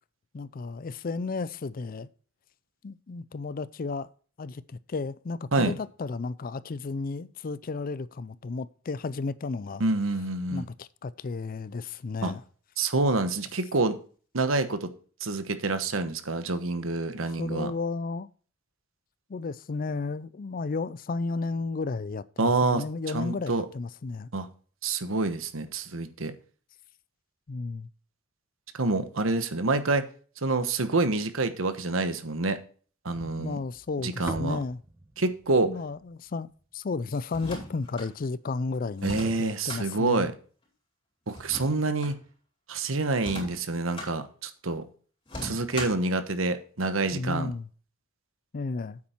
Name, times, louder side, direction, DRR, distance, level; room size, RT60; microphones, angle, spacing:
voice 1, 0.3-2.1 2.8-4.1 4.4-9.8 10.5-12.4 17.1-18.3 19.3-24.3 27.5-27.9 33.2-34.8 35.7-40.3 47.1-47.7 48.5-49.0, left 3 dB, 45° left, 0.4 m, -33 dB
voice 2, 9.8-10.7 12.2-12.3 12.8-13.9 14.3-14.9 15.2-17.7 22.4-22.8 23.1-23.6 24.3-24.5 24.8-26.3 28.7-30.0 30.4-32.6 33.0-33.6 34.0-34.6 35.2-35.7 39.0-40.3 41.3-42.1 42.7-44.8 45.4-47.5, right 3 dB, 85° right, 1.2 m, -27 dB
sound 1, 33.1-37.4, right 1 dB, 10° right, 0.6 m, -44 dB
sound 2, 37.3-38.1 39.0-39.8 41.3-42.2 43.2-44.1 45.3-46.1, left 1 dB, 25° left, 4.6 m, -38 dB
8.6 x 8.6 x 4.4 m
head